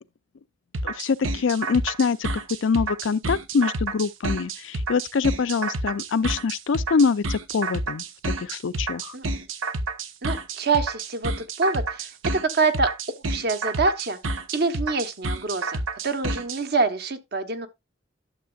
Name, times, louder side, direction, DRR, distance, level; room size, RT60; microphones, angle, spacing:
sound 1, 0.7-16.6, right 2 dB, 90° right, 1.0 m, -29 dB
voice 1, 0.8-2.3 2.6-9.2, left 5 dB, 70° left, 0.5 m, -24 dB
voice 2, 10.2-14.2 14.5-17.7, right 3 dB, 55° right, 1.0 m, -26 dB
12.0 x 7.2 x 2.4 m
head